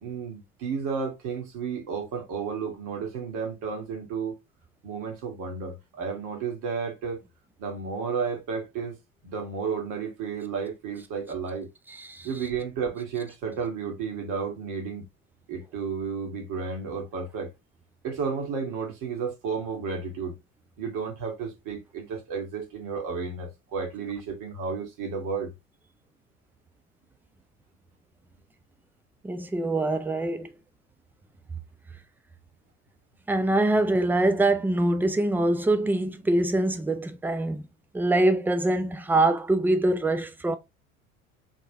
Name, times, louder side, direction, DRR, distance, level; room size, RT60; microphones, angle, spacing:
voice 1, 0.0-4.4 4.8-7.2 7.6-8.9 9.2-11.7 12.2-15.1 15.5-17.5 18.0-20.4 20.8-25.5, right 5 dB, 50° right, 1.9 m, -32 dB
voice 2, 29.2-30.5 33.3-37.6 37.9-40.6, right 2 dB, 5° right, 0.4 m, -24 dB
3.7 x 3.7 x 3.5 m
figure-of-eight pair, 65°, 40 cm